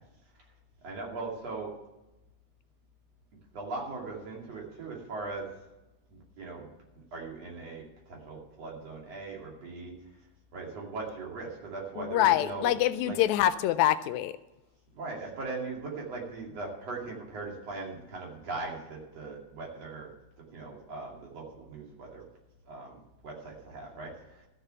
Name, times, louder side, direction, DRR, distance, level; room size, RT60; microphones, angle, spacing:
voice 1, 0.8-1.7 3.5-5.5 6.1-6.7 7.1-10.0 10.5-12.7 13.0-13.2 14.9-20.1 20.4-22.2 22.7-24.5, right 3 dB, 60° right, -1 dB, 3.7 m, -39 dB
voice 2, 12.0-14.3, left 13 dB, 80° left, 13 dB, 1.8 m, -25 dB
13.5 x 6.9 x 6.8 m, 0.99 s
omnidirectional pair, 3.4 m